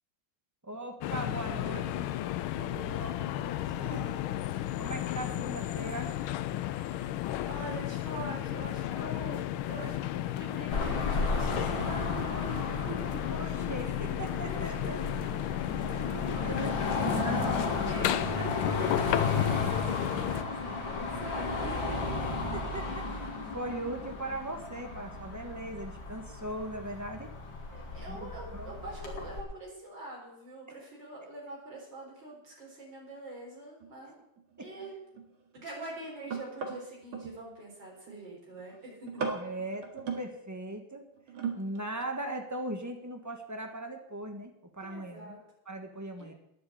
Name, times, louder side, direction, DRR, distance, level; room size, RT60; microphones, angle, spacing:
voice 1, 0.6-2.1 3.0-3.1 4.8-6.1 13.3-15.0 15.8-16.0 16.4-17.7 22.5-27.3 28.1-28.8 34.6-34.7 39.2-41.1 41.5-45.3 45.6-46.3, right 1 dB, 10° right, 4 dB, 1.2 m, -39 dB
sound 1, 1.0-20.4, left 13 dB, 90° left, 1.5 m, -34 dB
voice 2, 2.4-4.1 7.5-9.4 9.7-13.3 14.4-16.6 16.9-17.2 17.6-22.2 27.7-34.1 34.6-34.9 35.5-39.2 44.8-45.4 46.2-46.3, right 1 dB, 60° right, -3 dB, 4.8 m, -44 dB
Car passing by / Traffic noise roadway noise / Engine, 10.7-29.4, left 3 dB, 65° left, 2.9 m, -34 dB
sound 2, 33.8-33.9 34.4-37.4 37.8-38.2 38.6-38.8 39.0-40.3 41.2-41.8 42.2-42.3, right 6 dB, 80° right, 2.8 m, -38 dB
10.5 x 8.7 x 8.7 m, 0.80 s
omnidirectional pair, 2.2 m